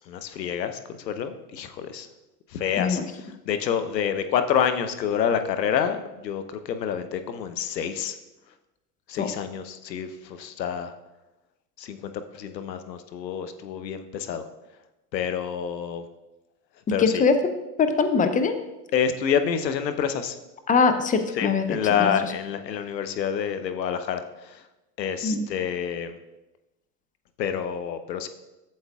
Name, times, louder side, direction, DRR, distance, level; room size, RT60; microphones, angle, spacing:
voice 1, 0.1-0.8 1.0-2.1 2.5-3.0 3.5-8.1 9.1-10.9 11.8-14.4 15.1-16.0 16.9-17.2 18.9-20.3 21.3-24.6 25.0-26.2 27.4-28.3, left 8 dB, 80° left, 10 dB, 0.9 m, -28 dB
voice 2, 17.0-17.4 17.8-18.6 20.7-21.6 22.0-22.3 25.2-25.5, left 5 dB, 15° left, 8 dB, 0.6 m, -22 dB
11.5 x 7.9 x 2.4 m, 0.99 s
hypercardioid pair, 95°, 49 cm